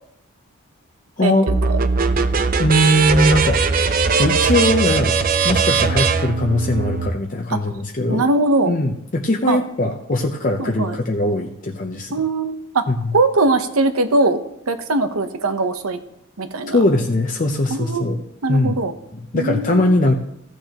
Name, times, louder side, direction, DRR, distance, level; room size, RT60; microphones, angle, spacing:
sound 1, 1.5-7.1, right 5 dB, 40° right, 0.5 m, -19 dB
voice 1, 2.6-3.6 4.2-5.2 5.4-8.3 8.6-12.1 12.9-13.1 16.7-18.2 18.5-18.8 19.1-20.2, left 1 dB, 40° left, 2 dB, 0.6 m, -20 dB
voice 2, 8.1-8.7 9.5-9.6 10.6-11.0 12.1-12.8 13.1-14.4 14.7-16.0 16.4-16.8 17.7-18.1 18.4-18.9 19.3-19.8, right 2 dB, 85° right, 9 dB, 0.9 m, -20 dB
15.0 x 9.0 x 2.9 m, 0.79 s
head